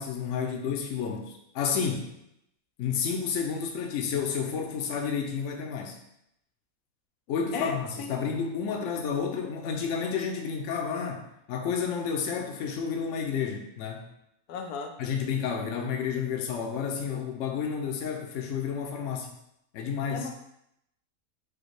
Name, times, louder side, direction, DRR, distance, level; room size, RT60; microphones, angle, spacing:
voice 1, 0.0-2.1 2.8-6.0 7.3-14.1 15.0-19.3 19.7-20.3, left 6 dB, 65° left, 2 dB, 0.9 m, -31 dB
voice 2, 7.5-8.1 14.5-14.9 20.1-20.3, left 5 dB, 90° left, 4 dB, 1.1 m, -34 dB
5.0 x 2.2 x 4.6 m, 0.79 s
omnidirectional pair, 1.6 m